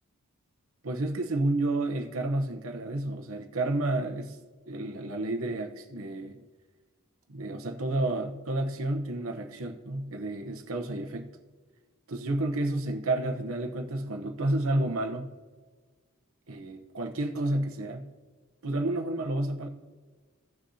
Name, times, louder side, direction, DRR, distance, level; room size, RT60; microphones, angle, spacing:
voice 1, 0.8-4.4 4.7-6.4 7.3-11.3 12.1-15.3 16.5-18.1 18.6-19.7, right 2 dB, 70° right, 4 dB, 0.9 m, -30 dB
17.0 x 6.5 x 2.8 m, 1.4 s
head